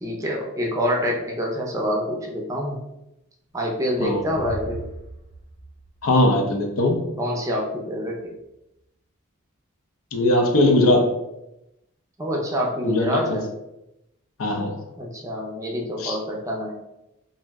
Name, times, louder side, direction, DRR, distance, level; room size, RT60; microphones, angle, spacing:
voice 1, 0.0-2.8 3.5-4.9 7.2-8.3 12.2-13.5 15.0-16.7, equal, 15° right, -1 dB, 0.4 m, -26 dB
sound 1, 3.5-7.0, right 1 dB, 40° left, 0.8 m, -39 dB
voice 2, 6.0-7.0 10.1-11.1 12.8-13.4 14.4-14.7 16.0-16.2, left 1 dB, 75° left, 3 dB, 0.5 m, -20 dB
2.6 x 2.0 x 3.4 m, 0.88 s
head